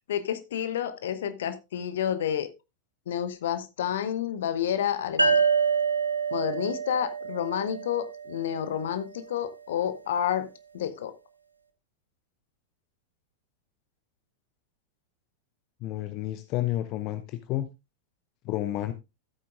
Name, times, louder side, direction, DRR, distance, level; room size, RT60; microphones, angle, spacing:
voice 1, 0.1-2.5 3.1-5.4 6.3-10.5 10.7-11.1, left 9 dB, 60° left, 1.0 m, -29 dB
sound 1, 5.2-8.6, right 5 dB, 85° right, 0.9 m, -26 dB
voice 2, 15.8-17.7 18.4-18.9, left 14 dB, 40° left, 0.7 m, -30 dB
14.0 x 8.5 x 2.5 m
figure-of-eight pair, 90°, 0 cm